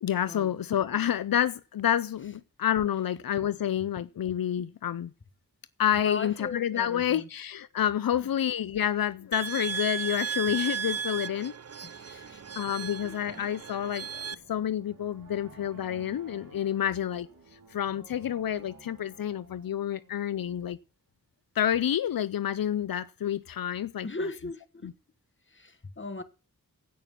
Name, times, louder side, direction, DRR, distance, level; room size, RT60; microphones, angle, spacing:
voice 1, 0.0-5.1 5.8-11.5 12.1-12.2 12.6-17.3 17.7-20.8 21.6-24.1, left 10 dB, 85° left, 0.5 m, -29 dB
voice 2, 6.0-7.3 8.1-8.3 11.8-12.4 12.7-13.5 24.0-24.9 25.5-26.2, left 3 dB, 35° left, 1.4 m, -39 dB
sound 1, 9.3-14.3, right 7 dB, 45° right, 0.6 m, -35 dB
sound 2, 10.6-20.6, right 3 dB, 70° right, 2.4 m, -55 dB
16.0 x 5.9 x 7.3 m
wide cardioid pair, 65°, 34 cm